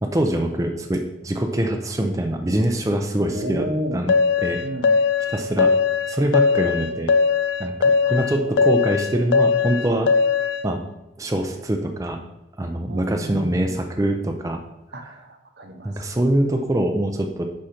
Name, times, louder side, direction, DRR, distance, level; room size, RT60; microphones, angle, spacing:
voice 1, 0.0-4.1 4.4-4.6 5.3-5.7 6.1-7.1 7.6-10.1 10.6-10.8 11.2-12.2 12.6-14.6 15.8-17.4, right 1 dB, 20° right, 3 dB, 0.5 m, -24 dB
voice 2, 3.3-4.0 4.6-5.0 8.1-8.7 12.9-13.8 14.9-16.0, equal, 70° right, 5 dB, 0.8 m, -32 dB
sound 1, 4.1-10.6, left 5 dB, 80° left, 0.4 m, -19 dB
6.3 x 5.0 x 4.3 m, 0.94 s
head